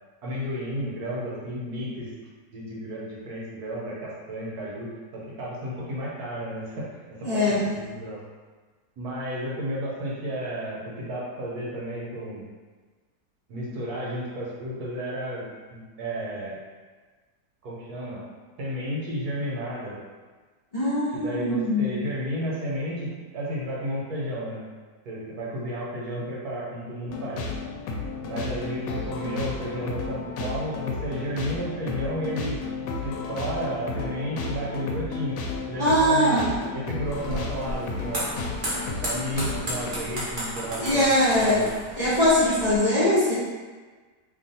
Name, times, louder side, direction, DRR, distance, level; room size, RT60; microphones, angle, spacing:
voice 1, 0.2-2.1 2.5-4.9 5.1-6.9 7.3-8.2 9.0-12.5 13.5-16.6 17.6-18.2 18.6-20.0 21.1-24.6 25.0-27.4 28.3-32.6 33.0-35.4 35.7-38.2 38.9-41.1 41.4-41.7, equal, 65° right, -5 dB, 1.3 m, -32 dB
voice 2, 7.2-7.6 20.7-21.9 35.8-36.5 40.8-41.6 42.0-43.3, left 1 dB, 40° left, -12 dB, 0.6 m, -21 dB
sound 1, 27.1-39.9, left 4 dB, 90° left, 1.2 m, -33 dB
sound 2, 37.0-42.8, right 1 dB, 40° right, 0.8 m, -34 dB
2.9 x 2.4 x 4.1 m, 1.4 s
omnidirectional pair, 1.8 m